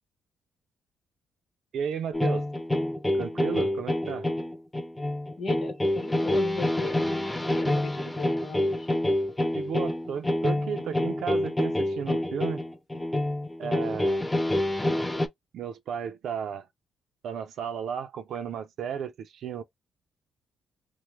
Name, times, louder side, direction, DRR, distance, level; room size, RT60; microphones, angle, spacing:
voice 1, 1.7-2.5 3.1-4.3 9.4-12.6 13.6-14.3 15.5-16.7 17.2-19.6, right 7 dB, 70° right, 0.4 m, -34 dB
sound 1, 2.1-15.3, left 1 dB, 10° left, 0.4 m, -27 dB
voice 2, 5.4-6.9 7.6-8.9, left 4 dB, 45° left, 0.9 m, -37 dB
2.9 x 2.0 x 3.3 m
cardioid pair, 90°, 0 cm